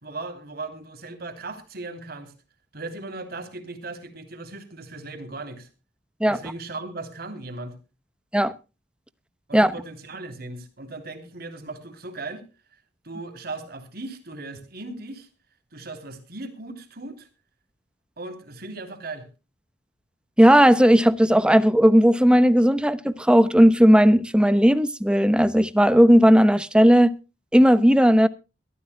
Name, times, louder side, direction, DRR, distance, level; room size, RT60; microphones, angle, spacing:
voice 1, 0.0-2.3 2.7-5.7 6.3-7.8 9.5-12.4 13.0-15.3 15.7-17.3 18.2-19.3, right 2 dB, 55° right, 3.3 m, -37 dB
voice 2, 20.4-27.2 27.5-28.3, equal, 5° right, 0.8 m, -16 dB
22.5 x 14.0 x 2.2 m
head